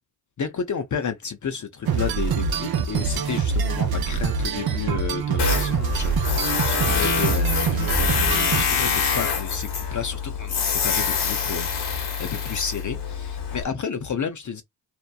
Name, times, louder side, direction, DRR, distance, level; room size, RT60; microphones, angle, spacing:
voice 1, 0.4-14.6, left 6 dB, 40° left, 0.6 m, -32 dB
sound 1, 1.8-9.0, right 5 dB, 50° right, 0.7 m, -25 dB
Tools, 5.4-13.6, left 6 dB, 55° left, 1.0 m, -25 dB
2.8 x 2.1 x 2.2 m
supercardioid pair, 45°, 47 cm